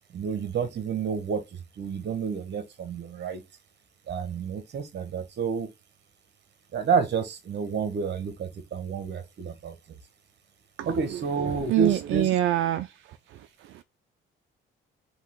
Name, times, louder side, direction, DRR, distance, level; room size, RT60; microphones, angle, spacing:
voice 1, 0.1-3.4 4.1-5.7 6.7-9.7 10.9-12.3, right 6 dB, 60° right, 1.3 m, -29 dB
voice 2, 10.8-12.9 13.3-13.8, right 14 dB, 80° right, 0.5 m, -27 dB
4.1 x 3.0 x 3.8 m
cardioid pair, 90°, 20 cm